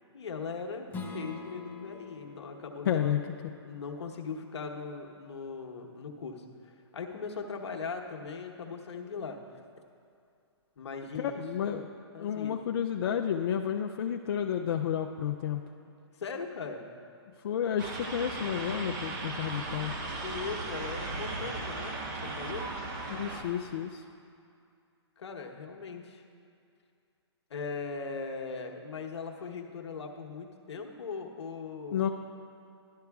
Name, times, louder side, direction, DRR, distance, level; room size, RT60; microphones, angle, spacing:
voice 1, 0.1-3.2 3.6-9.4 10.8-11.9 12.1-12.6 16.2-16.9 20.2-22.0 22.4-22.6 25.2-26.2 27.5-32.1, left 5 dB, 75° left, 2 dB, 1.0 m, -39 dB
Strum, 0.9-6.1, left 3 dB, 10° left, 0.7 m, -46 dB
voice 2, 2.9-3.5 11.1-11.8 12.2-15.6 17.4-19.9 23.1-24.0 31.9-32.1, left 9 dB, 55° left, 3 dB, 0.4 m, -31 dB
sound 1, 17.8-23.4, right 2 dB, 45° right, 1.1 m, -37 dB
13.0 x 11.5 x 2.3 m, 2.5 s
hypercardioid pair, 145°, 15 cm